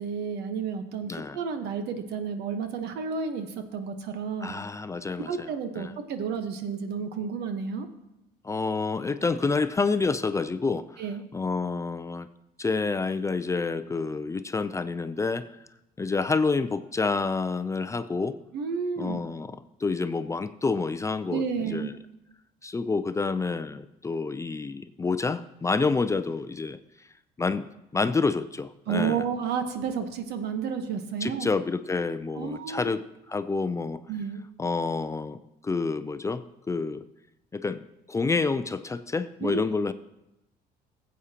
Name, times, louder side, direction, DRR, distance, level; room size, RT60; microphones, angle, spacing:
voice 1, 0.0-4.5 5.3-7.9 11.0-11.2 18.5-19.2 21.3-21.9 28.9-31.5 32.3-32.9 34.1-34.4 39.4-39.7, right 6 dB, 75° right, 7 dB, 1.2 m, -31 dB
voice 2, 1.0-1.4 4.4-5.5 5.8-5.9 8.4-10.9 11.3-12.3 12.6-15.4 16.0-18.4 19.0-21.9 22.6-26.8 27.4-29.2 31.2-33.0 33.3-34.0 34.6-37.0 37.5-37.8 38.1-39.9, left 4 dB, 15° left, 12 dB, 0.4 m, -28 dB
15.5 x 8.2 x 2.9 m, 0.92 s
cardioid pair, 110°, 17 cm